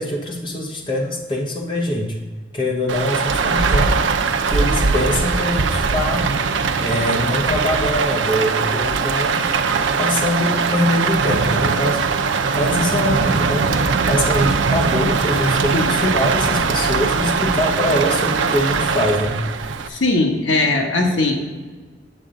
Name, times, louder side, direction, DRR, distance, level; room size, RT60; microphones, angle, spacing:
voice 1, 0.0-2.2 2.5-4.0 4.4-6.3 6.8-9.4 10.0-12.0 12.5-19.4, left 1 dB, 25° left, 0 dB, 1.0 m, -23 dB
Rain, 2.9-19.9, right 4 dB, 85° right, 0.6 m, -20 dB
voice 2, 19.9-21.4, left 2 dB, 90° left, 2 dB, 1.2 m, -19 dB
8.6 x 7.8 x 3.7 m, 1.4 s
head